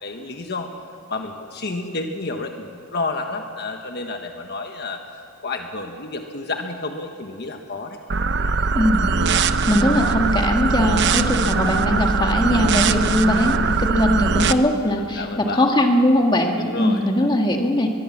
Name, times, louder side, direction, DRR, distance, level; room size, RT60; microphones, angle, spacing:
voice 1, 0.0-0.7 1.1-8.0 15.0-15.6 16.6-17.0, left 3 dB, 50° left, 4 dB, 1.3 m, -30 dB
sound 1, 8.1-14.5, right 4 dB, 55° right, 0.8 m, -21 dB
voice 2, 8.7-9.2 9.7-17.9, left 1 dB, 20° left, 3 dB, 1.9 m, -20 dB
23.0 x 21.0 x 7.4 m, 2.7 s
head